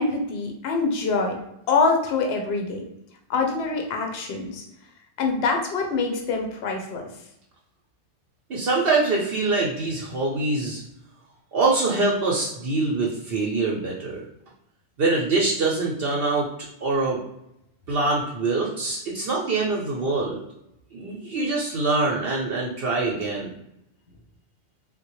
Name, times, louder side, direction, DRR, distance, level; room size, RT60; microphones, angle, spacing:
voice 1, 0.0-1.4 1.7-2.8 3.3-4.6 5.2-7.1, left 4 dB, 70° left, 2 dB, 0.9 m, -25 dB
voice 2, 8.5-10.8 11.5-14.2 15.0-16.5 16.8-17.2 17.9-20.4 20.9-23.5, right 3 dB, 65° right, -3 dB, 0.8 m, -24 dB
3.6 x 2.1 x 3.0 m, 0.81 s
omnidirectional pair, 1.1 m